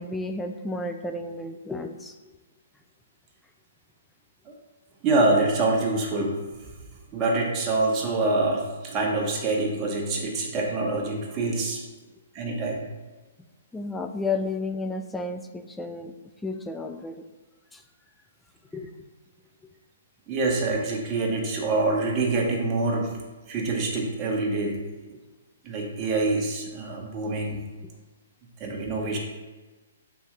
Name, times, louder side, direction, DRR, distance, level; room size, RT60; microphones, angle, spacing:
voice 1, 0.0-2.1 13.7-16.1 16.4-17.2 17.7-17.8 18.7-18.9, left 3 dB, 5° left, 5 dB, 0.3 m, -32 dB
voice 2, 5.0-6.4 7.1-11.8 12.3-12.9 20.3-23.1 23.5-24.8 25.6-27.6 28.6-29.2, right 2 dB, 25° right, -1 dB, 0.9 m, -25 dB
3.8 x 2.7 x 4.4 m, 1.2 s
figure-of-eight pair, 125°, 0 cm